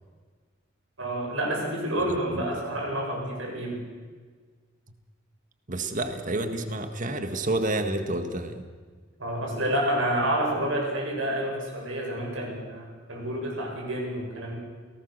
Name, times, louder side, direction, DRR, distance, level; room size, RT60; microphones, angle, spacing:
voice 1, 1.0-3.9 9.2-14.6, right 1 dB, 75° right, 0 dB, 7.7 m, -29 dB
voice 2, 5.7-8.7, right 2 dB, 40° right, 8 dB, 1.8 m, -29 dB
29.0 x 18.5 x 6.8 m, 1.5 s
head